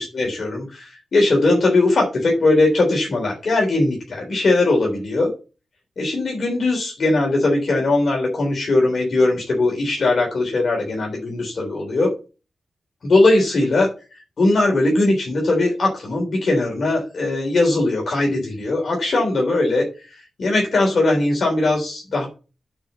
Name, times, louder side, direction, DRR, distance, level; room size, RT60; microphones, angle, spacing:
voice 1, 0.0-5.3 6.0-12.1 13.0-22.3, left 2 dB, 65° left, 0 dB, 3.7 m, -20 dB
8.8 x 4.9 x 7.1 m, 0.34 s
cardioid pair, 70°, 0 cm